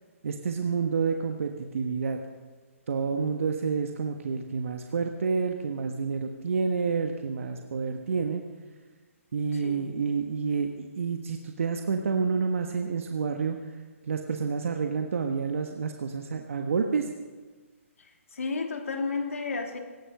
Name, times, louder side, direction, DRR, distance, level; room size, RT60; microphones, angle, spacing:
voice 1, 0.2-2.2 2.9-8.4 9.3-13.6 14.0-17.1, right 5 dB, 65° right, 4 dB, 1.3 m, -29 dB
voice 2, 9.5-9.9 18.0-19.8, left 4 dB, 75° left, 3 dB, 2.9 m, -32 dB
17.5 x 12.5 x 6.6 m, 1.4 s
hypercardioid pair, 155°, 8 cm